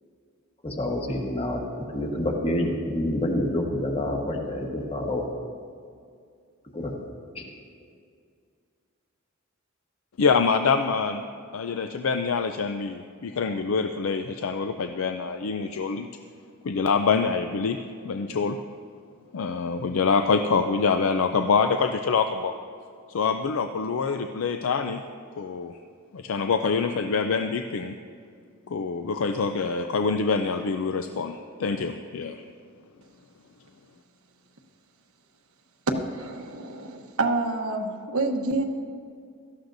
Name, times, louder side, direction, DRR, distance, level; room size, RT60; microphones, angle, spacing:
voice 1, 0.6-5.3 6.7-7.0 7.3-7.5, left 1 dB, 30° left, 1 dB, 1.3 m, -28 dB
voice 2, 10.2-11.2 11.5-16.1 16.6-17.8 18.0-18.6 19.3-22.6 23.1-25.0 25.4-25.8 26.1-27.9 28.7-32.4, left 5 dB, 75° left, 7 dB, 0.4 m, -25 dB
voice 3, 35.9-38.6, right 2 dB, 90° right, 4 dB, 1.1 m, -27 dB
17.0 x 13.0 x 2.6 m, 2.3 s
head